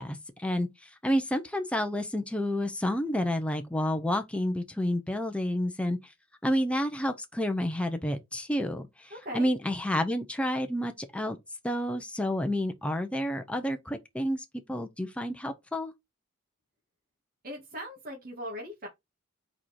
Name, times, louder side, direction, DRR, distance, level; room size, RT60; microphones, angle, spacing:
voice 1, 0.0-6.1 6.4-11.4 11.6-15.9, equal, 5° left, 0.7 m, -30 dB
voice 2, 9.1-9.5 17.4-18.9, equal, 45° right, 2.0 m, -39 dB
4.9 x 4.3 x 4.7 m
head